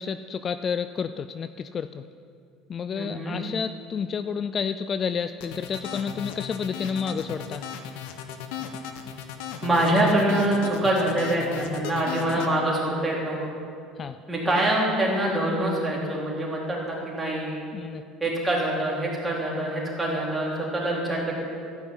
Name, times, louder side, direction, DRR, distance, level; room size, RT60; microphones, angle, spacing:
voice 1, 0.0-2.0 2.7-7.7 12.4-12.5 14.0-14.2 17.7-18.0, left 6 dB, 35° left, 11 dB, 0.4 m, -30 dB
voice 2, 2.9-3.4 9.6-13.4 14.3-17.6 18.2-21.3, right 1 dB, 15° right, -4 dB, 3.8 m, -25 dB
sound 1, 5.4-12.5, left 8 dB, 85° left, 1.1 m, -36 dB
13.5 x 5.9 x 9.5 m, 2.4 s
supercardioid pair, 110°, 0 cm